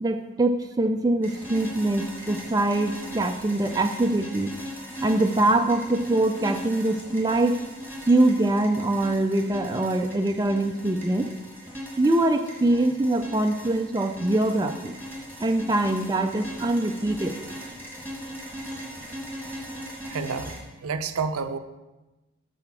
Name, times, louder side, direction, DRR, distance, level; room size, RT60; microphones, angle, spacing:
voice 1, 0.0-4.5 5.0-7.6 8.1-11.3 12.0-14.9 15.4-17.5, right 2 dB, 15° right, 5 dB, 0.3 m, -23 dB
sound 1, 1.2-20.6, equal, 10° left, 1.7 m, -39 dB
voice 2, 20.0-21.6, right 5 dB, 80° right, 9 dB, 0.6 m, -30 dB
7.3 x 5.0 x 6.1 m, 1.1 s
head